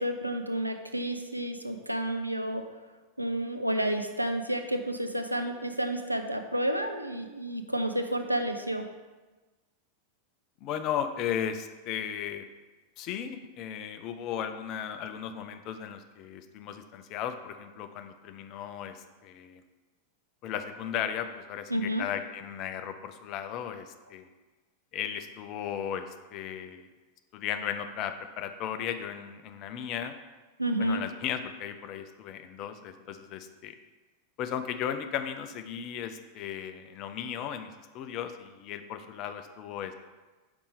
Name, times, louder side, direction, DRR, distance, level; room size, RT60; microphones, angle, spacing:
voice 1, 0.0-2.6 3.2-8.8 21.7-22.0 30.6-31.0, right 1 dB, 90° right, 6 dB, 0.4 m, -30 dB
voice 2, 10.6-12.4 13.0-19.6 20.4-24.3 24.9-26.9 27.3-30.1 30.8-33.7 34.4-39.9, left 9 dB, 40° left, 8 dB, 0.5 m, -36 dB
5.2 x 4.1 x 4.9 m, 1.2 s
figure-of-eight pair, 90°, 0 cm